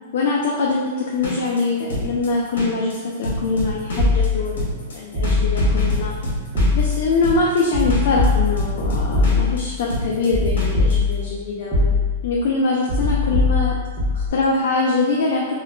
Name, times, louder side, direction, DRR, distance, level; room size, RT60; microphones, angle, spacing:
voice 1, 0.1-6.1 6.7-11.9 12.2-13.7 14.1-15.5, left 3 dB, 65° left, -3 dB, 0.4 m, -23 dB
sound 1, 1.1-10.9, equal, 85° left, 0.9 m, -28 dB
sound 2, 4.0-4.6 5.1-6.2 6.6-7.2 7.7-9.8 10.3-11.4 11.7-12.3 12.9-14.3, left 3 dB, 20° right, 0.9 m, -20 dB
2.2 x 2.1 x 3.5 m, 1.4 s
supercardioid pair, 160°, 0 cm